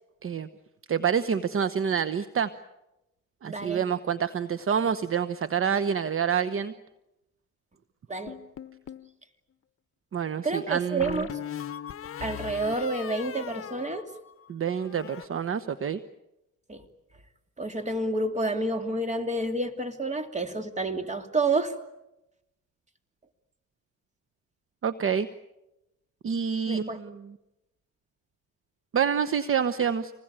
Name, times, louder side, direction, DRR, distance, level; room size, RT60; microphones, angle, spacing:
voice 1, 0.9-2.5 3.4-6.7 10.1-11.2 14.5-16.0 24.8-25.3 26.2-27.3 28.9-30.1, right 7 dB, 45° right, 12 dB, 1.1 m, -27 dB
voice 2, 3.5-3.8 8.1-8.4 10.4-11.4 12.2-14.1 16.7-16.8 17.6-21.7 26.7-27.0, right 2 dB, 25° right, 7 dB, 2.9 m, -29 dB
sound 1, 8.3-9.1 11.0-14.5 14.8-15.3, left 9 dB, 45° left, 1.0 m, -39 dB
26.5 x 20.5 x 9.0 m, 0.92 s
cardioid pair, 90°, 30 cm